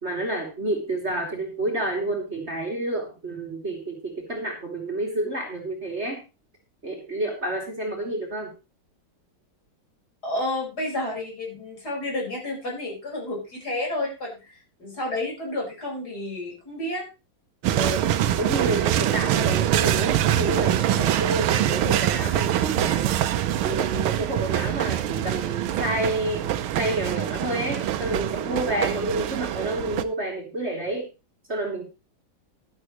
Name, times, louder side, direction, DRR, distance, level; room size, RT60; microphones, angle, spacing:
voice 1, 0.0-6.2 6.8-8.5 17.8-18.1 18.4-23.1 23.6-26.4 26.8-31.1 31.5-31.8, right 1 dB, 30° right, 0 dB, 3.1 m, -29 dB
voice 2, 10.2-17.0, left 1 dB, 50° left, -2 dB, 5.6 m, -31 dB
sound 1, 17.6-30.0, right 11 dB, 85° right, 1.7 m, -24 dB
12.5 x 12.0 x 3.1 m, 0.30 s
omnidirectional pair, 2.2 m